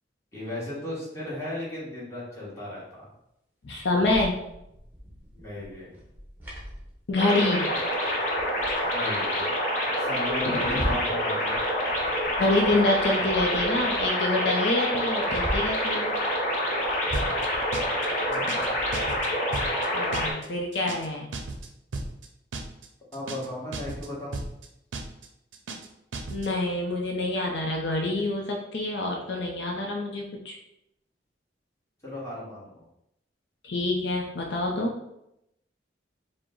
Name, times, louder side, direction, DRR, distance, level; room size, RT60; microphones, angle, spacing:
voice 1, 0.3-3.1 5.3-6.0 8.9-9.5 10.0-11.6 18.3-18.8 23.1-24.4 32.0-32.8, left 1 dB, 15° left, -7 dB, 1.3 m, -35 dB
voice 2, 3.6-4.3 7.1-7.7 10.5-11.0 12.4-16.1 19.9-21.3 26.3-30.6 33.6-35.0, left 2 dB, 75° left, 0 dB, 0.6 m, -27 dB
sound 1, 3.8-7.5 7.7-7.8 8.2-9.4 9.9-11.2 11.5-14.1 14.4-14.5 14.8-15.9 16.5-19.0, equal, 10° right, 0.9 m, -39 dB
sound 2, 7.2-20.3, equal, 45° left, 0.8 m, -27 dB
sound 3, 17.1-17.5 17.7-18.1 18.3-18.7 18.9-19.3 19.5-19.9 20.1-20.5 20.7-21.1 21.3-21.7 21.9-22.3 22.5-22.9 23.1-23.5 23.7-24.1 24.3-24.7 24.9-25.3 25.5-25.9 26.1-26.5, right 3 dB, 90° right, 0.5 m, -35 dB
4.8 x 2.1 x 3.8 m, 0.82 s
head